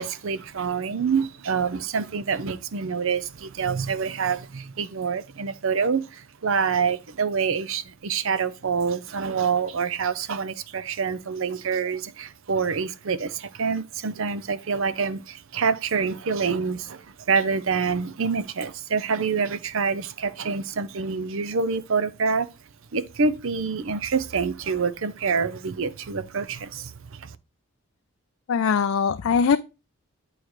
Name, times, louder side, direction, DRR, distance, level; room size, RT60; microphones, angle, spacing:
voice 1, 0.0-22.5 22.9-27.4, right 5 dB, 65° right, 0.6 m, -26 dB
voice 2, 28.5-29.6, left 6 dB, 65° left, 0.4 m, -21 dB
8.6 x 4.6 x 3.0 m
head